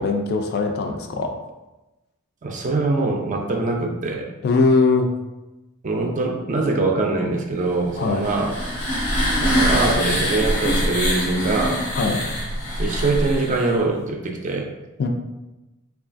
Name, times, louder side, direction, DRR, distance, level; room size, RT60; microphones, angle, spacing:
voice 1, 0.0-1.4 4.4-5.1 8.0-8.3 11.9-12.3 15.0-15.1, left 3 dB, 50° left, 3 dB, 0.3 m, -20 dB
voice 2, 2.4-4.3 5.8-8.5 9.3-11.8 12.8-14.7, right 3 dB, 35° right, 2 dB, 0.4 m, -23 dB
sound 1, 8.0-13.8, equal, 85° left, 0.8 m, -23 dB
3.1 x 2.4 x 2.5 m, 1.0 s
head